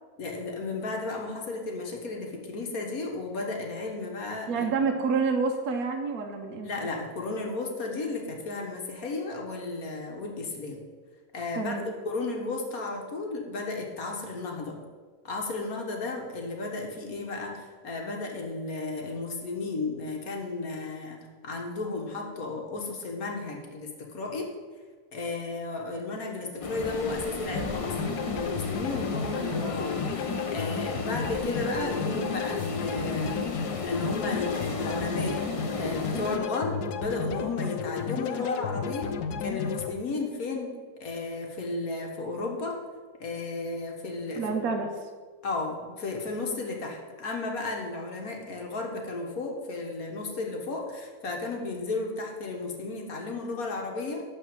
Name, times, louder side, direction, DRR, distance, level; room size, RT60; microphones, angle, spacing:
voice 1, 0.2-4.7 6.6-10.8 11.3-11.7 12.1-14.8 15.2-24.5 25.1-35.5 35.7-40.8 41.0-42.8 43.2-44.6 45.4-54.2, left 3 dB, 65° left, 1 dB, 1.7 m, -34 dB
voice 2, 4.5-6.9 11.6-11.9 44.4-44.9, right 4 dB, 70° right, 2 dB, 1.4 m, -28 dB
sound 1, 26.6-36.4, left 2 dB, 40° left, 0.4 m, -35 dB
sound 2, 27.5-39.9, left 6 dB, 90° left, 1.2 m, -33 dB
12.0 x 4.1 x 7.2 m, 1.5 s
omnidirectional pair, 1.6 m